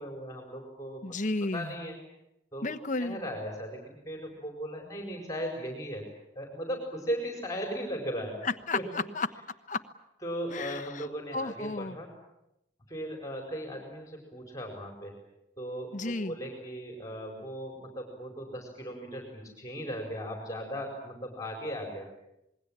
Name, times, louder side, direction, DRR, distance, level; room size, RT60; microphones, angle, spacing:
voice 1, 0.0-1.0 1.4-1.9 2.5-2.7 3.0-6.0 6.3-8.4 8.7-8.8 10.2-12.1 12.9-15.1 15.6-22.1, equal, 20° left, 2 dB, 4.8 m, -37 dB
voice 2, 1.0-1.7 2.6-3.2 8.4-9.3 9.7-9.8 10.5-12.0 15.9-16.3, left 3 dB, 40° left, 10 dB, 1.2 m, -33 dB
27.5 x 21.0 x 8.9 m, 0.85 s
head